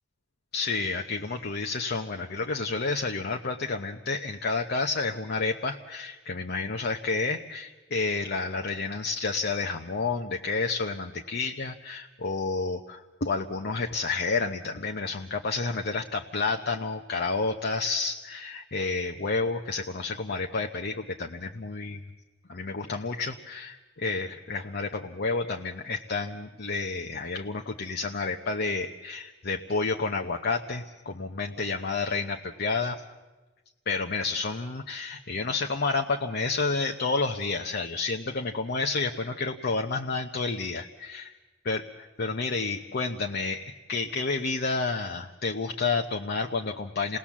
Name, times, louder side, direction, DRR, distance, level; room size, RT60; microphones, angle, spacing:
voice 1, 0.5-22.0 22.5-33.0 33.9-41.3 41.6-47.2, left 4 dB, 55° left, 4 dB, 0.8 m, -30 dB
28.0 x 19.0 x 7.3 m, 1.2 s
head